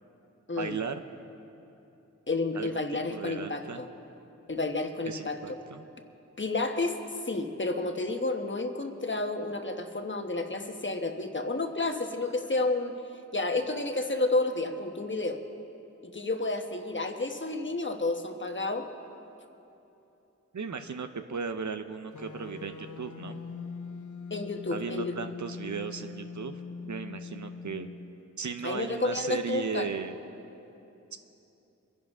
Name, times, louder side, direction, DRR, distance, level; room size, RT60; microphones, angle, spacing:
voice 1, 0.6-1.0 2.5-2.8 3.1-3.8 5.1-5.9 20.5-23.4 24.7-26.6 26.8-27.9 28.4-30.1 31.1-31.2, right 5 dB, 75° right, 8 dB, 0.8 m, -36 dB
voice 2, 2.3-3.9 4.5-5.6 6.4-12.9 13.3-15.4 16.0-18.9 24.3-25.1 28.6-29.9, left 2 dB, 40° left, 5 dB, 1.2 m, -31 dB
sound 1, 22.1-28.2, left 5 dB, 90° left, 0.7 m, -42 dB
23.0 x 11.0 x 3.6 m, 2.9 s
wide cardioid pair, 45°, 29 cm